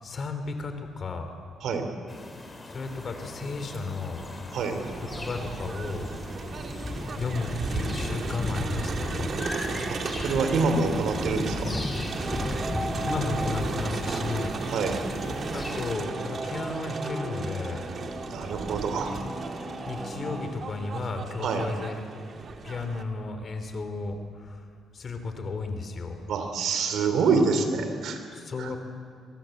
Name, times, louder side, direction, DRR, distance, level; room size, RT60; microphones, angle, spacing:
voice 1, 0.0-1.3 2.7-4.2 5.0-6.1 7.1-9.3 12.5-12.6 13.0-14.5 15.5-17.8 19.9-22.0 22.6-24.6 24.9-26.2 28.3-28.8, left 3 dB, 45° left, 7 dB, 3.4 m, -33 dB
sound 1, 2.1-15.9, left 2 dB, 25° left, 3.9 m, -36 dB
Crowd, 4.8-23.0, right 4 dB, 50° right, 2.0 m, -35 dB
voice 2, 9.9-11.7 14.7-15.0 18.3-19.2 21.4-21.7 26.3-28.2 28.6-28.7, right 4 dB, 75° right, 7 dB, 3.4 m, -26 dB
sound 2, 12.1-20.5, right 1 dB, 20° right, 3.7 m, -37 dB
23.0 x 22.5 x 8.0 m, 2.2 s
cardioid pair, 90°, 0 cm